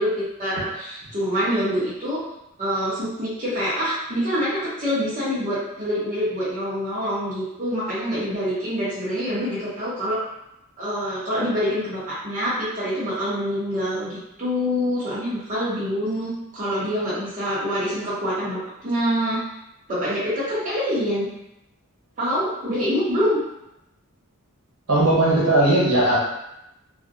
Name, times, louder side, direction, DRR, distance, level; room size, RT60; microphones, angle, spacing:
voice 1, 0.0-2.2 2.6-10.2 10.8-19.4 19.9-21.3 22.2-23.4, equal, 35° right, -10 dB, 0.7 m, -25 dB
voice 2, 24.9-26.2, right 1 dB, 75° right, -7 dB, 1.1 m, -18 dB
2.5 x 2.1 x 2.5 m, 0.86 s
head